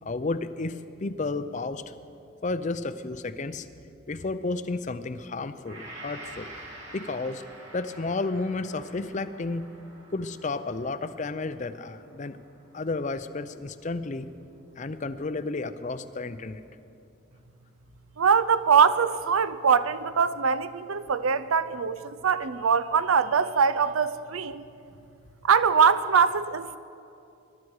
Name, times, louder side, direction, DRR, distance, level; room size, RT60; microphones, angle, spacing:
voice 1, 0.0-1.8 2.4-3.7 4.1-6.5 6.9-7.4 7.7-9.7 10.1-12.4 12.7-14.3 14.8-16.6, left 3 dB, 35° left, 0.5 m, -32 dB
Gong, 5.7-14.0 14.4-14.5, right 1 dB, 60° right, 2.8 m, -48 dB
voice 2, 18.2-24.6 25.4-26.8, right 6 dB, 85° right, 0.6 m, -22 dB
21.0 x 12.0 x 4.7 m
head